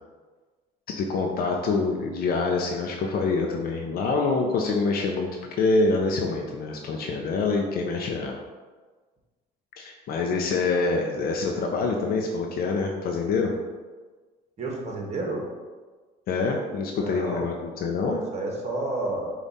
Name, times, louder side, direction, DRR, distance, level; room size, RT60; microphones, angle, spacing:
voice 1, 0.9-5.3 5.6-8.4 9.8-13.5 16.3-18.2, left 3 dB, 65° left, 1 dB, 0.5 m, -26 dB
voice 2, 14.6-15.5 17.0-17.5 18.0-19.3, right 2 dB, 40° right, 0 dB, 1.1 m, -31 dB
5.2 x 2.4 x 4.0 m, 1.4 s
cardioid pair, 110°, 17 cm